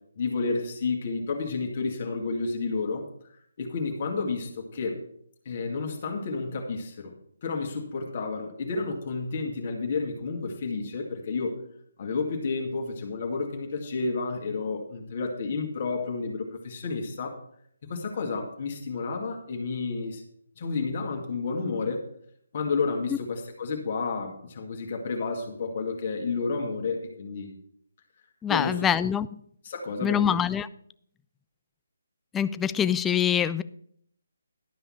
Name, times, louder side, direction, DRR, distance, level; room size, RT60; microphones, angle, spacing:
voice 1, 0.2-3.0 3.6-5.0 5.5-7.1 7.4-11.6 12.0-17.4 17.8-20.2 20.6-22.0 22.5-27.6 28.5-28.9 29.6-30.4, left 4 dB, 45° left, 1 dB, 2.1 m, -31 dB
voice 2, 28.4-29.3 30.0-30.7 32.3-33.6, left 9 dB, 10° left, 15 dB, 0.3 m, -24 dB
12.0 x 5.6 x 5.7 m, 0.67 s
figure-of-eight pair, 150°, 0 cm